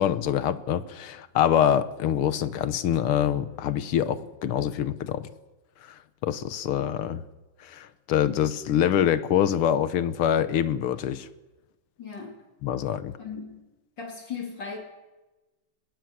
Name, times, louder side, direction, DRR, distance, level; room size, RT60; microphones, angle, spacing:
voice 1, 0.0-5.3 6.2-7.2 7.6-11.3 12.6-13.1, left 10 dB, 80° left, 1.9 m, -25 dB
voice 2, 12.0-12.4 13.2-13.6 14.0-14.8, left 5 dB, 55° left, 3.8 m, -37 dB
21.5 x 21.0 x 7.9 m
omnidirectional pair, 2.4 m